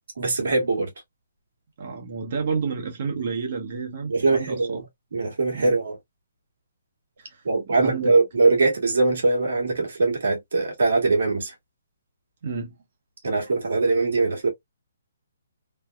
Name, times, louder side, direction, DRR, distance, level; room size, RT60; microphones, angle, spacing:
voice 1, 0.2-0.9 4.1-4.8 5.1-5.9 7.4-11.5 13.2-14.5, right 3 dB, 75° right, 1.6 m, -22 dB
voice 2, 1.8-4.8 5.5-5.8 7.2-8.1 12.4-12.7, right 5 dB, 55° right, 1.0 m, -31 dB
3.3 x 2.2 x 2.2 m
hypercardioid pair, 145°, 0 cm